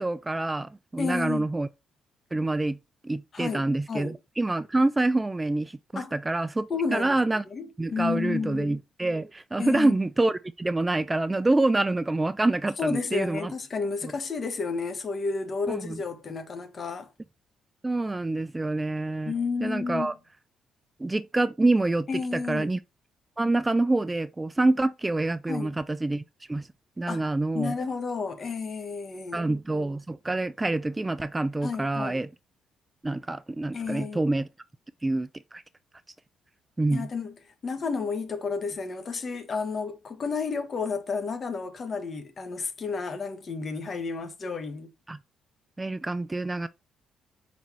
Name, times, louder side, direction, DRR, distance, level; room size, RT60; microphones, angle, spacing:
voice 1, 0.0-1.7 2.3-2.8 3.0-7.4 7.8-13.5 15.7-16.0 17.8-19.3 19.6-20.1 21.0-22.8 23.4-26.2 26.5-26.7 27.0-27.7 29.3-32.3 33.0-34.5 35.0-35.6 36.8-37.1 45.1-45.2 45.8-46.7, right 2 dB, 15° right, 0.3 m, -26 dB
voice 2, 1.0-1.5 3.3-4.2 5.9-6.1 6.7-7.1 7.5-8.7 9.6-9.9 12.8-17.1 19.2-20.1 22.1-22.7 25.5-25.7 27.1-27.3 27.5-29.4 31.6-32.2 33.7-34.3 36.9-37.3 37.6-44.9, left 4 dB, 45° left, 1.3 m, -31 dB
5.2 x 4.2 x 4.6 m
cardioid pair, 90°, 0 cm